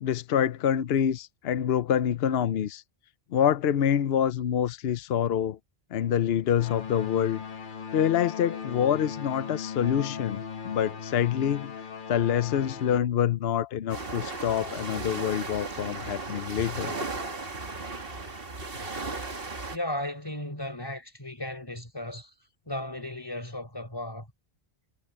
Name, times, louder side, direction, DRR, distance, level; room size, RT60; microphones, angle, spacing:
voice 1, 0.0-2.8 3.3-5.6 5.9-7.4 7.9-11.7 12.1-16.9, left 9 dB, 70° left, 0.9 m, -26 dB
sound 1, 6.5-13.0, left 6 dB, 50° left, 1.1 m, -38 dB
sound 2, 13.9-19.8, right 3 dB, 60° right, 2.3 m, -36 dB
voice 2, 19.7-22.3 22.7-24.3, left 1 dB, 20° left, 4.3 m, -35 dB
omnidirectional pair, 1.1 m